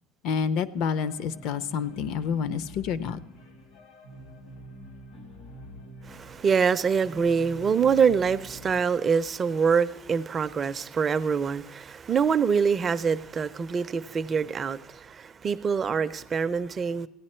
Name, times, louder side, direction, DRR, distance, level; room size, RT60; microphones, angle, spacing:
voice 1, 0.2-3.2, left 6 dB, 60° left, 0.6 m, -28 dB
sound 1, 0.9-8.8, equal, 85° left, 2.1 m, -47 dB
voice 2, 6.1-17.1, right 6 dB, 25° right, 0.4 m, -25 dB
15.5 x 9.7 x 4.3 m
cardioid pair, 145°, 0 cm